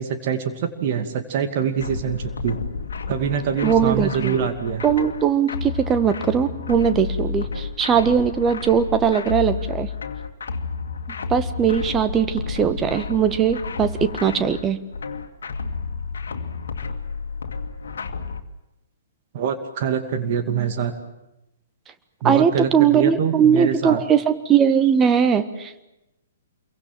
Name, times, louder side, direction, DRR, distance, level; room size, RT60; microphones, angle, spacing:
voice 1, 0.0-2.6 3.1-4.8 19.3-20.9 22.2-24.0, right 8 dB, 45° right, 6 dB, 2.5 m, -24 dB
sound 1, 1.8-18.4, left 5 dB, 65° left, 2.1 m, -31 dB
voice 2, 3.6-4.5 4.8-9.9 11.3-14.8 22.2-25.8, right 7 dB, 20° right, 10 dB, 1.6 m, -20 dB
27.5 x 23.5 x 7.6 m, 0.93 s
figure-of-eight pair, 115°, 0 cm